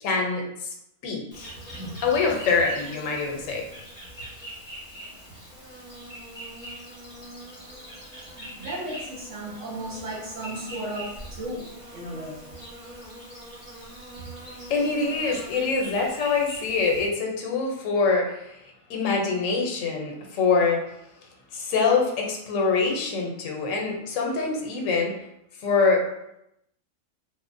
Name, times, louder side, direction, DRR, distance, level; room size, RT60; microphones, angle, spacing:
voice 1, 0.0-0.7 1.0-1.5 2.0-3.7 14.7-18.6 18.9-20.8 21.5-25.1 25.6-26.0, left 4 dB, 85° left, 0 dB, 1.0 m, -24 dB
Insect, 1.3-17.1, right 1 dB, 10° right, 0.8 m, -42 dB
voice 2, 8.4-11.7 11.9-12.5, right 1 dB, 70° right, -6 dB, 1.3 m, -35 dB
3.0 x 2.1 x 2.5 m, 0.82 s
omnidirectional pair, 1.3 m